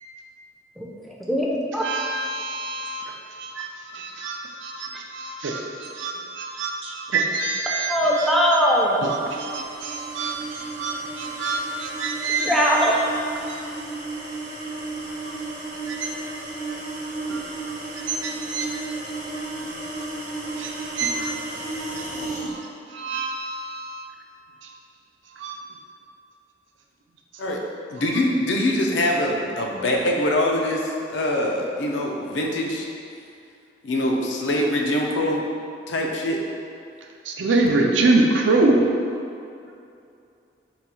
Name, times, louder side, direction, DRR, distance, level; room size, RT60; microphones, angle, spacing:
voice 1, 1.3-1.8 7.9-9.0 12.4-13.0, equal, ahead, -4 dB, 0.4 m, -20 dB
voice 2, 1.8-3.1 3.4-8.3 9.0-12.9 13.4-13.6 15.9-16.1 17.3-17.4 18.1-18.8 19.6-19.7 20.4-21.4 22.0-22.1 22.4-22.6 22.9-24.0 24.6-24.7 25.4-25.6 37.3-38.8, right 3 dB, 85° right, 1 dB, 0.4 m, -26 dB
sound 1, 8.6-22.5, right 2 dB, 45° right, 0.6 m, -33 dB
voice 3, 27.9-32.9 33.8-35.4 35.9-36.4, left 1 dB, 80° left, 0 dB, 0.5 m, -23 dB
3.9 x 2.3 x 4.3 m, 2.6 s
head